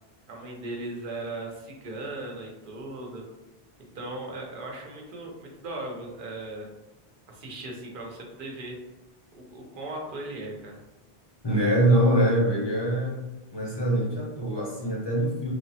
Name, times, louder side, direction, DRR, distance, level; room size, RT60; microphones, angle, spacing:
voice 1, 0.3-3.2 3.9-6.7 7.3-8.8 9.3-10.8, right 2 dB, 60° right, -1 dB, 0.8 m, -37 dB
voice 2, 11.4-13.3 13.5-15.5, right 1 dB, 30° left, -4 dB, 0.6 m, -24 dB
3.2 x 2.0 x 2.7 m, 1.0 s
omnidirectional pair, 1.0 m